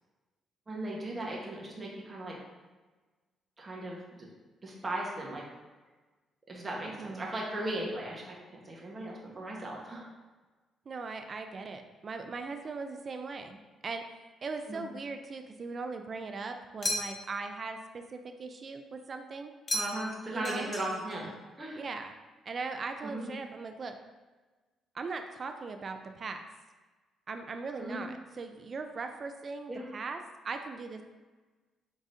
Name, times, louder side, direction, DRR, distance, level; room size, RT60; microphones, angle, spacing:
voice 1, 0.7-2.4 3.6-4.3 4.6-5.4 6.5-8.4 8.6-10.1 14.7-14.8 19.7-21.3 21.6-21.8 23.0-23.3 27.8-28.0 29.7-29.8, right 1 dB, 25° right, -3 dB, 1.2 m, -37 dB
voice 2, 6.8-7.3 10.9-14.1 14.4-19.5 20.3-20.7 21.7-22.1 22.5-24.0 24.9-26.5 27.3-31.0, right 4 dB, 45° right, 6 dB, 0.4 m, -39 dB
sound 1, 16.8-17.4 19.7-20.2 20.4-21.2, left 1 dB, 35° left, 0.7 m, -35 dB
4.9 x 3.8 x 2.7 m, 1.3 s
cardioid pair, 90°, 0 cm